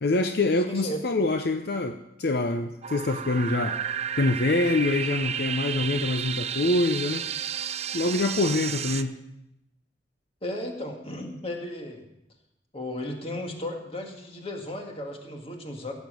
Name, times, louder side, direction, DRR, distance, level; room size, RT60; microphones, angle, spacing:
voice 1, 0.0-3.8 4.2-7.3 7.9-9.1, left 2 dB, 65° left, 6 dB, 0.7 m, -25 dB
voice 2, 0.6-1.0 10.4-12.0 12.7-15.9, left 1 dB, 35° left, 2 dB, 1.9 m, -35 dB
sound 1, 2.8-9.0, right 8 dB, 40° right, 0.5 m, -32 dB
15.5 x 7.3 x 6.3 m, 0.86 s
head